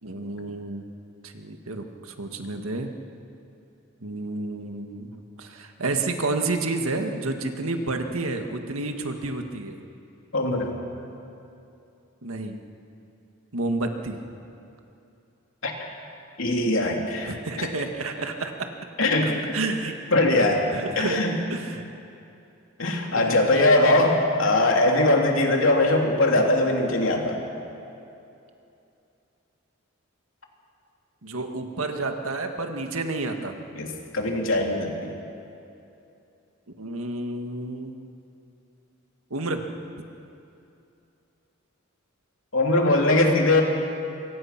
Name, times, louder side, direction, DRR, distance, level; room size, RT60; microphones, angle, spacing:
voice 1, 0.0-0.9 1.2-2.9 4.0-9.8 12.2-12.6 13.5-14.2 17.2-18.7 19.0-20.0 20.7-21.2 21.5-21.8 23.1-23.4 25.3-25.4 31.2-33.6 36.8-37.9 39.3-39.6, right 2 dB, 85° right, 5 dB, 1.8 m, -30 dB
voice 2, 10.3-10.7 15.6-15.7 16.4-17.7 19.0-19.4 20.1-20.7 21.0-21.4 22.8-27.4 33.7-35.1 42.5-43.6, left 2 dB, 70° left, 1 dB, 3.2 m, -21 dB
25.5 x 23.5 x 6.0 m, 2.7 s
head